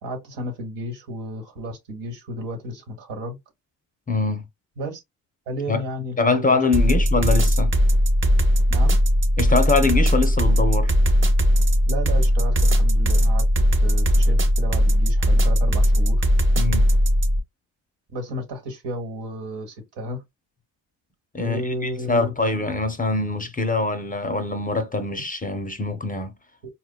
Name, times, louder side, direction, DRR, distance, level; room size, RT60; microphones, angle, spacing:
voice 1, 0.0-3.4 4.8-5.0 5.5-6.6 6.9-7.0 8.7-9.0 11.9-16.6 18.1-20.2 21.4-22.3 25.2-25.3, equal, 75° right, 1.3 m, -33 dB
voice 2, 4.1-4.4 5.7-5.8 6.2-7.8 9.4-10.9 16.6-16.9 21.3-26.3, left 3 dB, 20° left, 0.5 m, -23 dB
sound 1, 6.7-17.4, equal, 30° right, 0.6 m, -18 dB
4.2 x 2.2 x 2.2 m
supercardioid pair, 65°, 42 cm